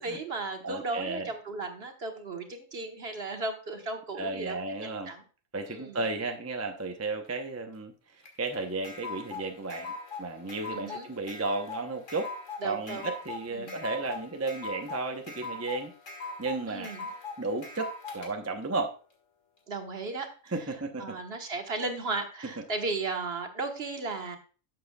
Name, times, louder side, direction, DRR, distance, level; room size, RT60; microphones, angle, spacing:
voice 1, 0.0-5.2 5.7-6.0 10.7-11.1 12.6-13.1 13.5-13.8 16.7-17.1 19.7-20.5 21.0-24.4, right 3 dB, 50° right, 5 dB, 1.5 m, -35 dB
voice 2, 0.6-1.3 4.2-5.1 5.5-12.3 12.6-15.9 16.4-16.9 17.4-19.0 20.5-21.2, right 3 dB, 15° right, 5 dB, 0.6 m, -34 dB
sound 1, 8.2-18.3, left 3 dB, 70° left, 2.1 m, -40 dB
12.0 x 7.7 x 2.3 m, 0.37 s
omnidirectional pair, 1.4 m